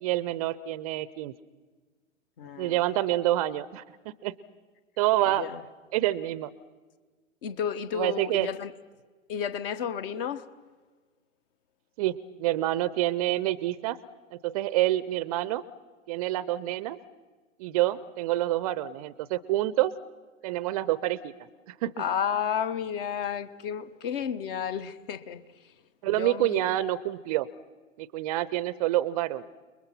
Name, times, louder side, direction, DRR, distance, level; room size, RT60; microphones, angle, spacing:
voice 1, 0.0-1.3 2.6-4.3 5.0-5.5 5.9-6.5 7.9-8.5 12.0-14.0 14.4-15.6 16.1-17.0 17.6-19.9 20.4-21.3 21.7-21.9 26.0-27.5 28.0-29.4, right 15 dB, 30° right, 0.6 m, -27 dB
voice 2, 2.4-2.8 5.4-5.6 7.4-8.7 9.3-10.5 22.0-25.4 26.1-26.8, left 8 dB, 45° left, 1.3 m, -32 dB
29.5 x 21.5 x 5.8 m
figure-of-eight pair, 110°, 39 cm